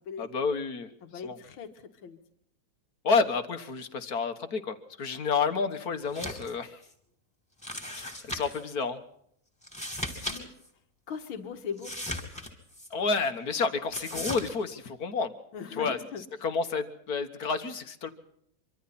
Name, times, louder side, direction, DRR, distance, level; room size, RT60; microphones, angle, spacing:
voice 1, 0.2-0.9 1.2-1.4 3.0-6.8 7.9-9.0 12.9-15.3 15.8-16.0 16.4-18.1, left 4 dB, 50° left, 9 dB, 1.8 m, -30 dB
voice 2, 1.0-2.2 10.2-10.5 11.1-11.9 15.5-16.2, left 6 dB, 80° left, 6 dB, 2.5 m, -39 dB
sound 1, 6.0-6.5 6.8-6.9 7.6-8.6 9.6-10.4 10.6-10.7 11.8-12.9 13.9-14.5, left 1 dB, 5° left, 2.9 m, -37 dB
25.5 x 25.0 x 4.2 m, 0.69 s
omnidirectional pair, 2.2 m